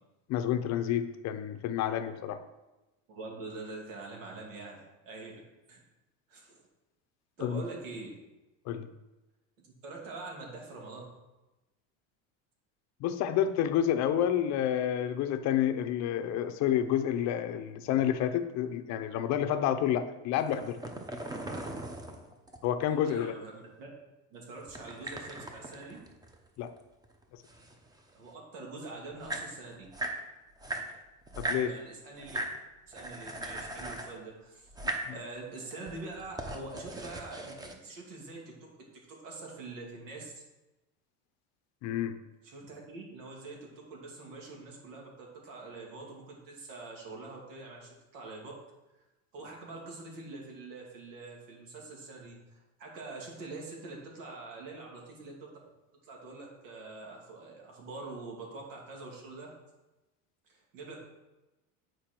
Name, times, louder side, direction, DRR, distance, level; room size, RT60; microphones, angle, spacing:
voice 1, 0.3-2.4 7.4-7.6 8.7-8.9 13.0-20.8 22.6-23.4 26.6-26.7 31.4-31.8 41.8-42.2, left 10 dB, 45° left, 9 dB, 0.6 m, -29 dB
voice 2, 3.1-5.3 5.7-5.8 6.3-6.6 7.4-8.1 9.6-11.1 22.9-23.9 24.3-26.0 28.1-29.9 31.6-32.4 32.8-34.7 35.1-38.6 39.1-40.3 42.4-48.5 49.3-55.6 56.0-59.5 60.5-61.0, right 3 dB, 85° right, -1 dB, 2.6 m, -44 dB
sound 1, 20.4-22.8 24.7-26.8 27.0-28.3 28.9-29.0 29.1-30.2 30.6-31.7 32.2-32.6 32.9-34.2 34.7-35.1 35.6-37.7, right 2 dB, 10° right, 0.7 m, -39 dB
9.1 x 4.7 x 4.5 m, 1.0 s
supercardioid pair, 135°, 36 cm